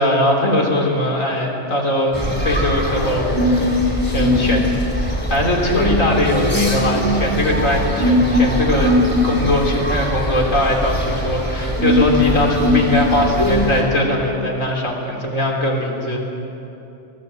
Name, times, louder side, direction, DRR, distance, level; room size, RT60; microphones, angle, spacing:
voice 1, 0.0-3.7 4.0-8.9 9.2-16.2, left 1 dB, 90° left, 0 dB, 3.7 m, -20 dB
sound 1, 2.1-13.8, left 1 dB, 10° left, 4.0 m, -20 dB
24.0 x 15.0 x 8.2 m, 2.9 s
omnidirectional pair, 1.3 m